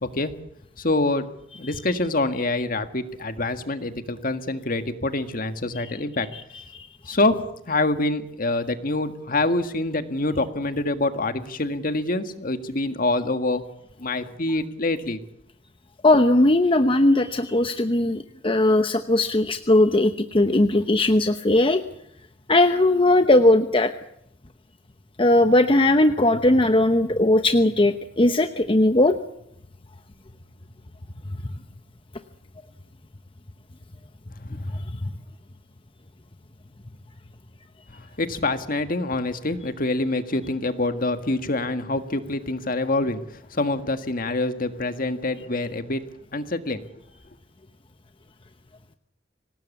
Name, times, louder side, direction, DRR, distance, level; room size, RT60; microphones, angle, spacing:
voice 1, 0.0-0.3 0.8-1.3 1.6-6.3 7.0-7.4 7.7-13.6 14.0-15.2 38.2-46.0 46.3-46.8, left 2 dB, 50° left, 9 dB, 1.8 m, -25 dB
voice 2, 16.0-21.8 22.5-23.9 25.2-29.2 34.5-34.6, left 1 dB, 30° left, 8 dB, 0.9 m, -18 dB
25.5 x 19.0 x 8.4 m, 0.76 s
head